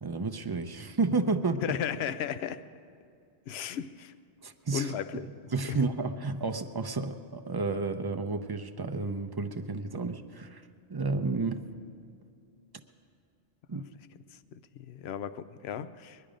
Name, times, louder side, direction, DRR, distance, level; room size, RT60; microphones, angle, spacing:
voice 1, 0.0-1.6 4.4-4.9 5.5-10.6 10.9-11.7 13.7-13.8, right 3 dB, 30° right, 7 dB, 0.5 m, -31 dB
voice 2, 1.6-2.6 3.5-4.1 4.7-5.3 5.6-5.8 13.7-13.8 14.5-16.2, left 8 dB, 70° left, 13 dB, 0.8 m, -35 dB
22.0 x 11.0 x 5.1 m, 2.4 s
omnidirectional pair, 1.1 m